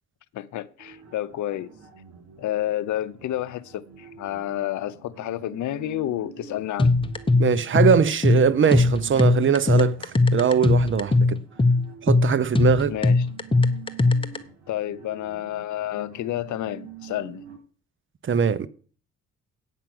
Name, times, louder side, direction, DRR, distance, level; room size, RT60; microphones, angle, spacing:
voice 1, 0.3-1.7 2.4-6.9 12.9-13.3 14.7-17.4, left 13 dB, 75° left, 0.7 m, -30 dB
sound 1, 0.8-17.6, right 8 dB, 65° right, 4.3 m, -47 dB
sound 2, 6.8-14.4, left 3 dB, 15° left, 1.0 m, -20 dB
voice 2, 7.4-11.4 12.0-12.9 18.2-18.7, right 7 dB, 40° right, 0.7 m, -21 dB
9.1 x 5.9 x 7.7 m
cardioid pair, 90°, 30 cm